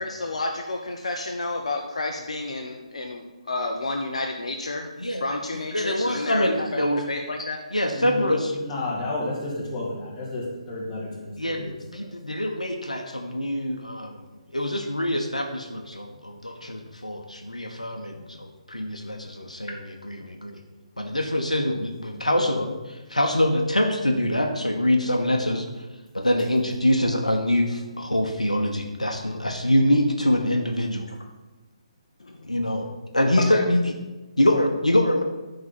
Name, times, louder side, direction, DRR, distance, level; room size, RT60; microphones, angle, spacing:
voice 1, 0.0-4.9 5.2-7.6 18.1-18.2 20.3-20.4 32.2-32.5 33.5-33.6, left 2 dB, 65° left, 2 dB, 0.8 m, -31 dB
voice 2, 5.0-5.4 5.7-7.0 7.7-8.6 11.4-11.7 11.9-14.2 14.5-20.6 21.0-25.9 26.1-31.1 32.4-32.9 33.1-33.8 34.4-35.2, left 1 dB, 85° left, 4 dB, 1.0 m, -24 dB
voice 3, 7.9-8.3 8.6-12.1, left 2 dB, 20° left, -7 dB, 3.0 m, -32 dB
9.6 x 3.9 x 7.0 m, 1.1 s
figure-of-eight pair, 140°, 4 cm